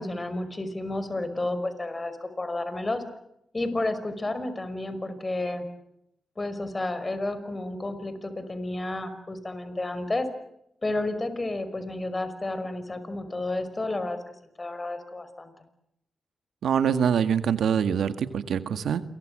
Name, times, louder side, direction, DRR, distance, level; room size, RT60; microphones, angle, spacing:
voice 1, 0.0-3.0 3.5-5.7 6.4-10.3 10.8-14.2 14.6-15.5, left 2 dB, 25° left, 11 dB, 5.5 m, -31 dB
voice 2, 16.6-19.0, right 8 dB, 80° right, 10 dB, 1.8 m, -24 dB
28.5 x 23.0 x 7.7 m, 0.81 s
cardioid pair, 65°, 0 cm